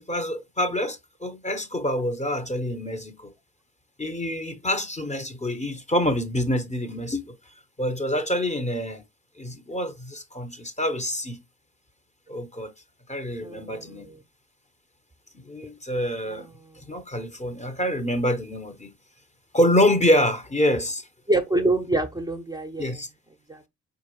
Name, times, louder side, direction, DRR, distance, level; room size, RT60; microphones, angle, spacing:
voice 1, 0.0-3.3 4.0-7.3 7.8-9.0 9.4-11.4 12.3-12.7 13.1-14.1 15.3-16.5 16.9-18.9 19.5-21.1 22.8-23.1, left 1 dB, 15° left, 1.0 m, -26 dB
voice 2, 13.4-14.2 16.3-16.8 21.3-23.0 23.5-23.6, right 2 dB, 10° right, 0.8 m, -27 dB
4.6 x 3.8 x 3.0 m
figure-of-eight pair, 45°, 43 cm